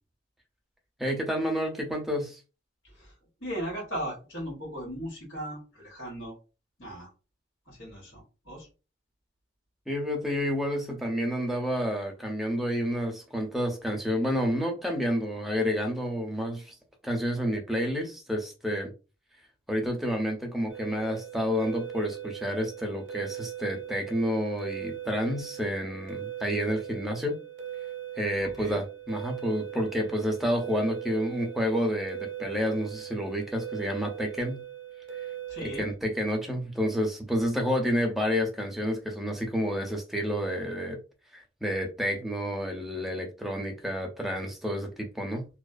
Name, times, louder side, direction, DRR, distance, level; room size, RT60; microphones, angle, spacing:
voice 1, 1.0-2.4 9.9-16.8 17.0-18.9 19.7-27.4 28.2-34.6 35.8-41.0 41.3-45.5, equal, ahead, 0.5 m, -29 dB
voice 2, 2.8-3.1 3.4-6.4 6.8-7.1 7.6-8.7 28.4-28.8 35.5-35.9, equal, 85° left, 1.4 m, -37 dB
sound 1, 20.7-35.9, right 11 dB, 70° right, 0.6 m, -40 dB
2.5 x 2.3 x 2.3 m
head